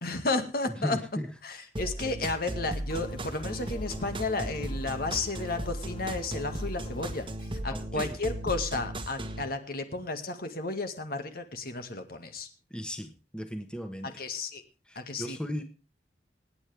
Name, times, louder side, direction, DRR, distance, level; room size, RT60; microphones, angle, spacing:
voice 1, 0.0-1.0 1.4-7.3 7.6-12.5 14.0-14.6 15.0-15.4, left 3 dB, 55° left, 7 dB, 2.1 m, -33 dB
voice 2, 0.8-1.3 7.7-8.2 12.7-14.1 14.9-15.6, equal, 5° left, 6 dB, 1.4 m, -36 dB
sound 1, 1.8-9.4, right 1 dB, 30° right, 1.4 m, -36 dB
sound 2, 2.9-7.3, left 2 dB, 30° left, 0.9 m, -46 dB
25.5 x 9.6 x 3.5 m, 0.33 s
head